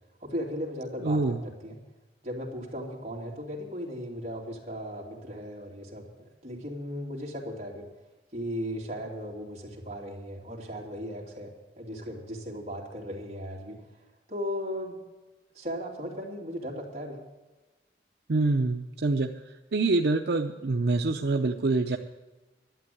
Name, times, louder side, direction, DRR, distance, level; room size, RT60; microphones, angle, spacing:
voice 1, 0.2-1.8 2.2-6.1 6.4-7.9 8.3-13.8 14.3-15.0 15.5-17.2, equal, 40° right, -3 dB, 2.8 m, -37 dB
voice 2, 1.0-1.4 18.3-19.3 19.7-22.0, right 3 dB, 70° right, 4 dB, 0.6 m, -25 dB
11.5 x 8.5 x 9.3 m, 1.1 s
head